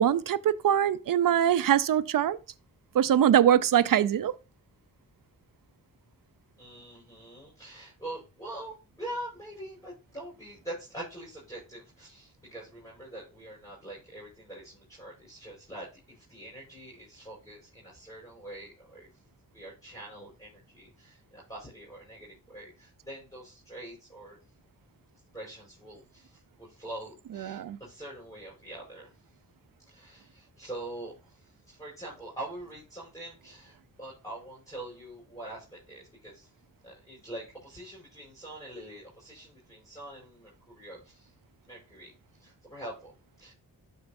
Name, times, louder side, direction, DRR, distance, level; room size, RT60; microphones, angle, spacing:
voice 1, 0.0-2.4 2.9-4.3 27.3-27.8, right 10 dB, 65° right, 0.6 m, -23 dB
voice 2, 6.6-19.1 19.5-24.4 25.3-29.1 29.8-36.5 36.8-41.3 41.7-42.1 42.4-43.5, right 1 dB, 10° left, 4.9 m, -44 dB
12.0 x 4.5 x 2.6 m
cardioid pair, 70°, 36 cm